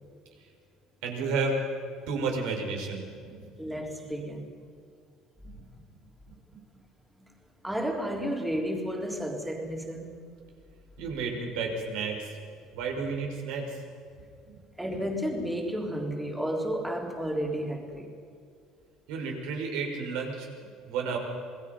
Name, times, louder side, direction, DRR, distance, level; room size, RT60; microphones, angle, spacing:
voice 1, 1.0-1.6 2.1-3.5 5.4-5.5 6.5-6.6 11.0-12.3 12.7-13.8 14.5-14.6 19.1-20.5 20.9-21.2, right 4 dB, 80° right, 1 dB, 6.0 m, -32 dB
voice 2, 3.6-4.5 7.2-7.3 7.6-10.2 14.8-18.1, equal, 5° right, 0 dB, 3.5 m, -32 dB
27.5 x 21.0 x 5.5 m, 2.4 s
cardioid pair, 150°, 0 cm